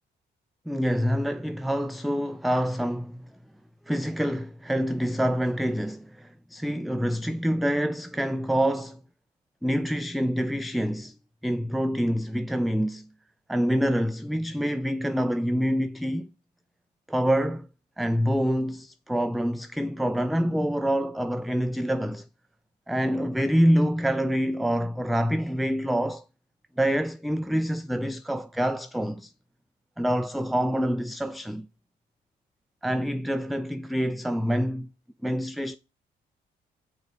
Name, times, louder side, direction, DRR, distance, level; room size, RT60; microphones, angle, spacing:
voice 1, 0.7-3.3 3.9-9.0 9.6-11.2 11.4-13.1 13.5-16.3 17.1-17.7 18.0-22.3 22.9-26.2 26.8-29.3 30.0-31.7 32.8-34.9 35.2-35.8, equal, ahead, 0.3 m, -26 dB
6.4 x 4.4 x 6.3 m
cardioid pair, 90°, 20 cm